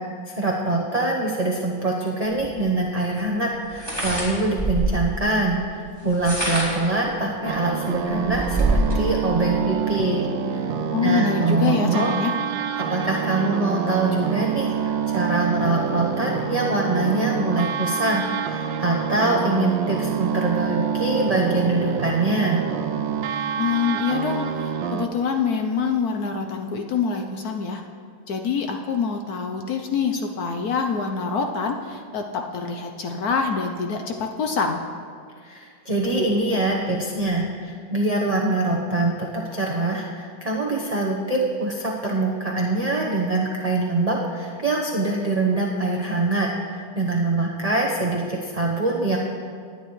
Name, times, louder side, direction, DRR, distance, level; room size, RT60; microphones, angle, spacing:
voice 1, 0.3-10.3 10.5-10.6 11.0-12.1 12.9-22.7 35.4-49.2, right 2 dB, 30° right, -3 dB, 0.6 m, -24 dB
sound 1, 2.4-2.5 3.7-5.1 6.0-6.9 7.5-7.6 7.9-9.0, right 1 dB, 10° left, 2.8 m, -24 dB
sound 2, 7.4-25.1, right 8 dB, 80° right, 1.3 m, -27 dB
voice 2, 10.9-12.3 23.6-27.8 28.3-34.8, left 5 dB, 65° left, 4 dB, 1.0 m, -25 dB
19.0 x 9.9 x 3.2 m, 2.1 s
omnidirectional pair, 2.1 m